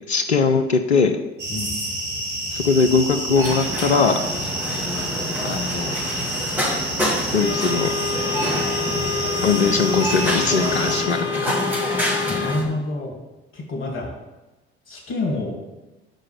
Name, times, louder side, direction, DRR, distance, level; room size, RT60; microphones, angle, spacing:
voice 1, 0.1-1.2 2.5-4.3 5.4-6.0 7.3-7.9 9.4-11.6, left 5 dB, 85° left, 5 dB, 0.6 m, -20 dB
sound 1, 1.4-11.0, right 1 dB, 60° right, 2.1 m, -29 dB
sound 2, 3.4-12.7, left 1 dB, 5° right, 2.6 m, -27 dB
sound 3, 7.4-12.5, left 6 dB, 10° left, 1.7 m, -28 dB
voice 2, 12.3-13.2 13.5-14.1 14.9-15.6, left 2 dB, 40° left, 0 dB, 2.3 m, -27 dB
6.4 x 4.7 x 6.5 m, 1.1 s
figure-of-eight pair, 60°, 32 cm